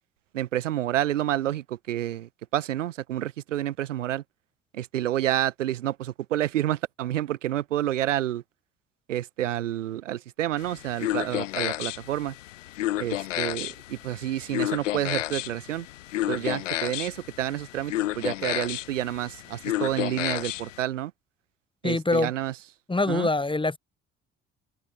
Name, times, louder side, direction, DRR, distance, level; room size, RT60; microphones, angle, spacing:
voice 1, 0.3-4.2 4.7-8.4 9.1-12.3 13.0-15.9 16.3-21.1 21.8-22.5 23.1-23.3, right 13 dB, 75° right, 2.2 m, -29 dB
sound 1, 10.6-20.8, left 14 dB, 75° left, 1.0 m, -31 dB
voice 2, 21.8-22.3 22.9-23.8, left 2 dB, 15° left, 2.0 m, -24 dB
figure-of-eight pair, 50°, 37 cm